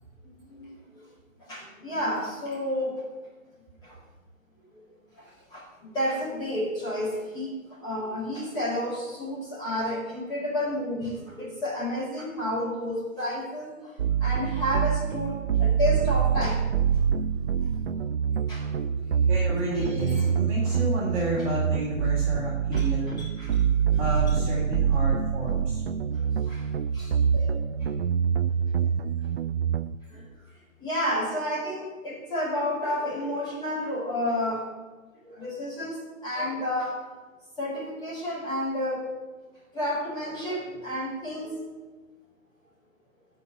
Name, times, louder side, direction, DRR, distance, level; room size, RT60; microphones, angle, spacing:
voice 1, 1.5-3.0 3.8-4.0 5.5-13.7 14.2-16.6 18.5-18.9 19.8-20.3 20.6-20.7 22.7-23.6 26.1-26.6 26.9-27.6 28.8-28.9 30.1-30.2 30.8-34.7 35.2-37.0 37.6-39.1 39.7-41.6, left 1 dB, 10° left, -7 dB, 4.8 m, -31 dB
sound 1, 14.0-29.9, right 7 dB, 50° right, 0.5 m, -25 dB
voice 2, 19.3-23.2 24.0-25.8, equal, 25° right, -5 dB, 3.2 m, -31 dB
12.0 x 5.7 x 8.8 m, 1.3 s
figure-of-eight pair, 145°, 40 cm